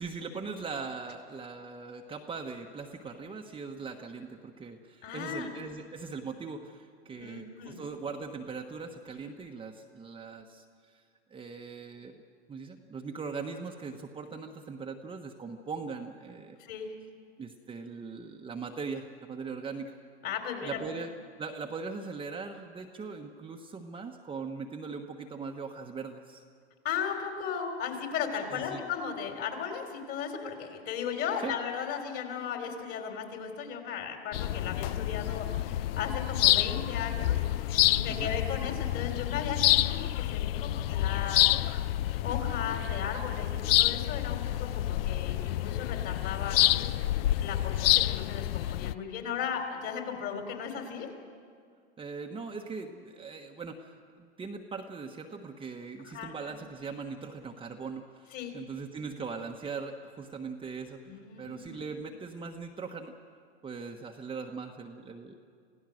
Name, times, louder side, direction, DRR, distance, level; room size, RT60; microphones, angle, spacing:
voice 1, 0.0-11.0 11.3-12.1 12.5-16.6 17.4-19.9 20.6-21.1 21.4-26.4 28.5-28.8 31.4-31.5 38.1-38.3 52.0-61.0 61.4-63.1 63.6-65.3, right 4 dB, 15° right, 2 dB, 1.2 m, -40 dB
voice 2, 5.0-5.5 7.2-7.8 16.6-16.9 20.2-20.8 26.8-41.9 42.2-46.7 47.4-51.1 56.1-56.3 58.3-58.5 61.1-61.8, left 7 dB, 40° left, 4 dB, 3.8 m, -36 dB
sound 1, 34.3-48.9, left 14 dB, 60° left, 0.6 m, -28 dB
27.0 x 16.5 x 6.4 m, 2.2 s
hypercardioid pair, 115°, 34 cm